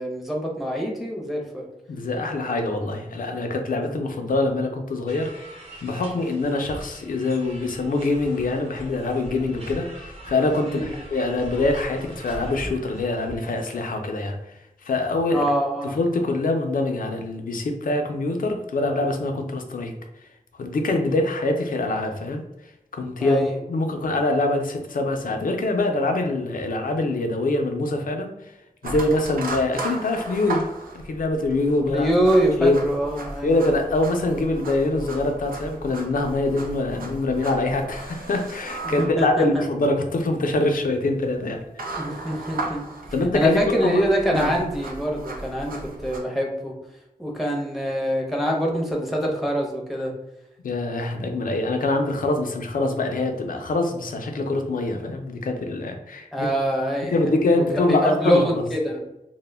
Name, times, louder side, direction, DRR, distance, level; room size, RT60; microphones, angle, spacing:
voice 1, 0.0-1.7 10.6-11.1 15.3-16.0 23.2-23.6 31.9-33.6 38.8-39.6 42.0-42.8 43.3-46.7 47.2-50.1 56.3-57.1 57.6-59.0, equal, ahead, -1 dB, 0.5 m, -24 dB
voice 2, 1.9-5.5 5.8-14.4 14.8-15.5 15.9-20.0 20.6-22.4 22.9-28.3 28.8-30.7 30.9-32.1 32.6-32.8 33.4-41.6 43.1-44.0 44.3-44.5 50.6-56.5 57.1-58.4, left 2 dB, 75° left, 4 dB, 0.4 m, -24 dB
sound 1, 5.1-13.8, equal, 40° right, 0.8 m, -41 dB
sound 2, 28.8-46.2, right 2 dB, 85° right, 0.4 m, -36 dB
2.1 x 2.0 x 3.3 m, 0.90 s
wide cardioid pair, 80°, 14 cm